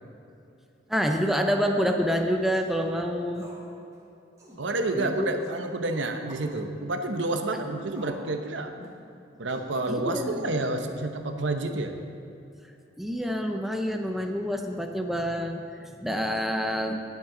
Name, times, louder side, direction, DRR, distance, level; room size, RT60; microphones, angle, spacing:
voice 1, 0.9-3.5 4.9-5.3 7.5-7.6 9.9-10.4 13.0-16.9, equal, ahead, 3 dB, 0.7 m, -27 dB
sound 1, 2.5-2.8 3.3-3.7 3.9-4.0 4.4-4.6 5.4-5.7 6.3-6.5 7.2-7.4 7.9-8.3 8.8-9.0 9.5-9.7 10.3-10.7, equal, 20° right, 2.2 m, -49 dB
voice 2, 4.6-8.7 9.4-11.9, right 2 dB, 85° right, 6 dB, 0.9 m, -29 dB
19.0 x 7.5 x 3.9 m, 2.8 s
head